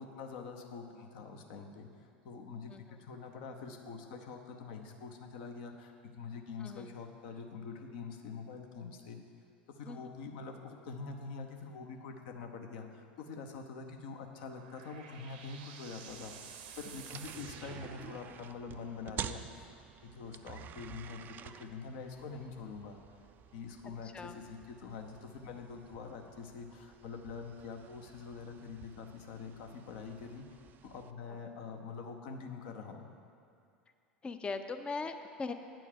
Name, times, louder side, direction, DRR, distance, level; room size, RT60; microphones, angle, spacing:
voice 1, 0.0-1.9 2.2-2.7 3.0-9.2 9.8-19.6 20.0-23.0 23.5-33.1, left 5 dB, 60° left, 4 dB, 0.8 m, -45 dB
voice 2, 6.6-6.9 9.9-10.1 24.1-24.4 34.2-35.5, left 4 dB, 20° left, 8 dB, 0.5 m, -39 dB
sound 1, 14.1-18.6, right 7 dB, 65° right, 0.7 m, -52 dB
sound 2, 16.1-31.1, right 9 dB, 35° right, 0.3 m, -50 dB
8.9 x 4.5 x 7.4 m, 2.5 s
figure-of-eight pair, 80°, 6 cm